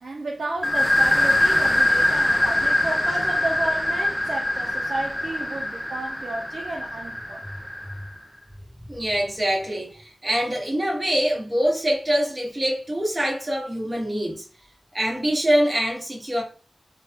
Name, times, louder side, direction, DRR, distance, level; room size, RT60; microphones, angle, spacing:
voice 1, 0.0-7.4, right 2 dB, 75° right, 0.5 m, -32 dB
sound 1, 0.6-8.1, left 1 dB, 5° left, 0.4 m, -23 dB
voice 2, 8.9-14.4 14.9-16.4, equal, 20° right, 1.2 m, -24 dB
3.4 x 2.2 x 2.8 m
wide cardioid pair, 100°, 0 cm